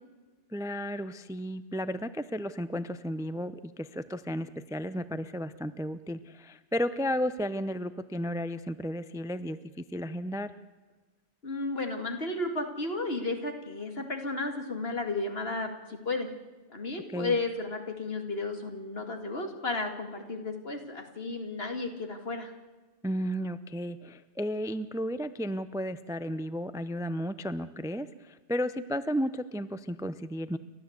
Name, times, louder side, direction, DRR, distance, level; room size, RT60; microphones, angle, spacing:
voice 1, 0.5-10.5 17.1-17.3 23.0-30.6, equal, 5° right, 13 dB, 0.5 m, -33 dB
voice 2, 11.4-16.3 16.7-22.5, left 3 dB, 60° left, 5 dB, 2.7 m, -33 dB
29.5 x 13.0 x 8.1 m, 1.3 s
omnidirectional pair, 1.1 m